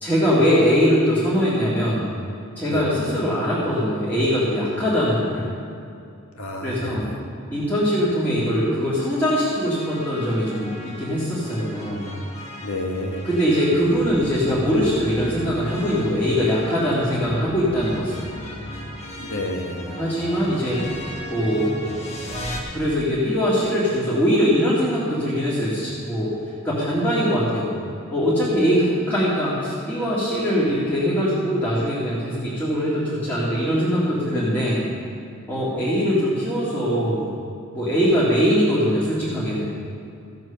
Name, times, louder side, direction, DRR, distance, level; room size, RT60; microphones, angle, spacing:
voice 1, 0.0-2.1 2.6-5.5 6.6-7.1 7.5-12.1 13.2-18.1 20.0-20.8 21.3-21.8 22.7-26.3 26.6-27.7 28.1-34.9 35.5-37.3 37.7-39.7, equal, 10° left, -10 dB, 2.0 m, -22 dB
voice 2, 6.3-7.2 12.6-13.3 19.2-20.0, left 1 dB, 85° left, 2 dB, 1.5 m, -30 dB
sound 1, 9.2-22.6, equal, 30° left, 1.5 m, -36 dB
15.0 x 7.8 x 5.8 m, 2.5 s
head